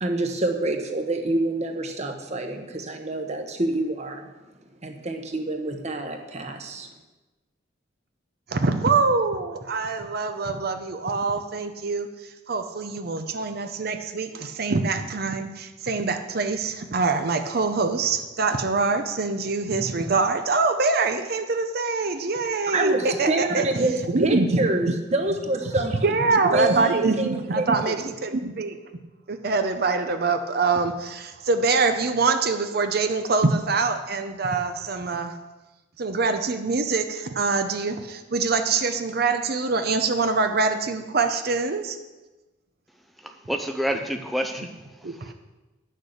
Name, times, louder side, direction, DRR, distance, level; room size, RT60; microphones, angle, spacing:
voice 1, 0.0-4.3 4.8-6.9 22.7-26.1 26.5-27.7, right 2 dB, 40° right, 5 dB, 1.1 m, -26 dB
voice 2, 8.5-12.1 12.5-23.7 24.1-24.5 26.0-28.8 29.3-35.3 36.0-42.0 45.0-45.3, right 4 dB, 55° right, 7 dB, 0.7 m, -24 dB
voice 3, 43.2-45.3, equal, ahead, 5 dB, 0.5 m, -29 dB
10.0 x 6.6 x 6.5 m, 1.1 s
head